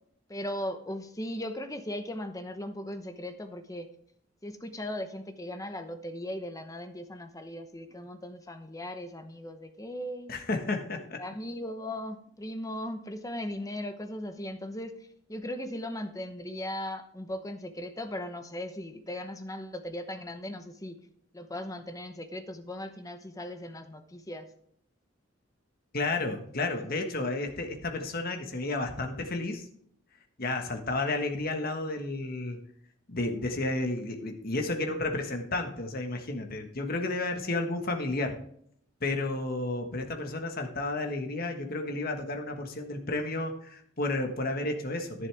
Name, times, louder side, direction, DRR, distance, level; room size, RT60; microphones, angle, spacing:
voice 1, 0.3-3.9 4.4-10.3 11.2-14.9 15.3-21.0 21.3-24.5, left 1 dB, 15° left, 7 dB, 0.9 m, -38 dB
voice 2, 10.3-11.2 25.9-29.7 30.4-32.6 33.1-38.3 39.0-45.3, left 2 dB, 45° left, 4 dB, 1.4 m, -32 dB
11.0 x 10.5 x 3.4 m, 0.68 s
head